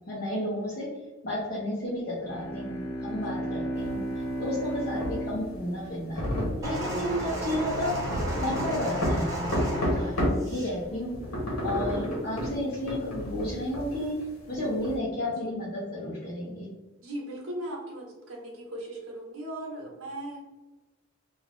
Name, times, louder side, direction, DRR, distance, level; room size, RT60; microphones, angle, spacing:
voice 1, 0.1-0.9 1.2-4.0 4.4-6.3 6.6-7.9 8.4-9.6 9.9-11.2 11.6-14.1 14.5-16.7, left 1 dB, 45° left, -8 dB, 0.7 m, -32 dB
Bowed string instrument, 2.1-6.9, right 1 dB, 10° left, 0.5 m, -35 dB
voice 2, 3.1-3.5 15.2-15.5 17.0-20.4, right 1 dB, 75° right, -2 dB, 0.9 m, -38 dB
sound 1, 3.8-10.5 10.8-15.0, equal, 80° left, 1.0 m, -31 dB
sound 2, 6.6-10.8 11.6-11.8, right 1 dB, 15° right, 0.9 m, -34 dB
2.6 x 2.4 x 3.3 m, 1.2 s
head